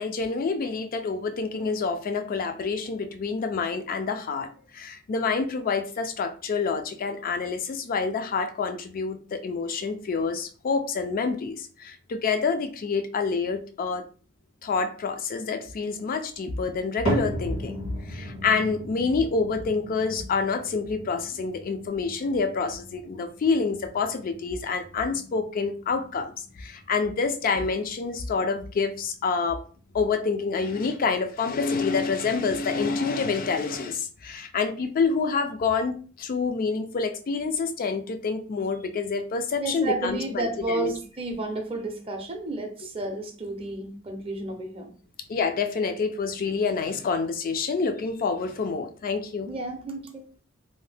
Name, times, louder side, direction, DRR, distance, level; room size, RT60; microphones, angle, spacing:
voice 1, 0.0-14.0 14.6-17.8 18.1-29.6 29.9-40.9 45.3-49.5, left 4 dB, 45° left, 8 dB, 0.3 m, -27 dB
sound 1, 17.0-33.4 33.7-34.2 34.8-34.9 35.7-35.8, equal, 75° left, 1.3 m, -38 dB
voice 2, 39.6-44.9 49.5-50.3, right 2 dB, 25° right, 3 dB, 0.5 m, -32 dB
2.6 x 2.0 x 3.3 m, 0.40 s
head